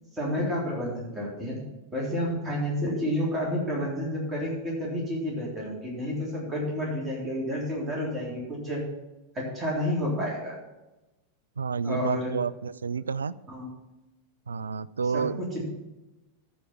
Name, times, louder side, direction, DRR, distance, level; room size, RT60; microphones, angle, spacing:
voice 1, 0.1-1.6 1.9-8.8 9.3-10.6 11.8-12.3 13.5-13.7 15.1-15.6, equal, 15° right, -5 dB, 3.6 m, -30 dB
voice 2, 11.6-13.3 14.5-15.4, right 5 dB, 75° right, 19 dB, 0.3 m, -30 dB
14.5 x 5.1 x 6.1 m, 1.0 s
figure-of-eight pair, 90°, 0 cm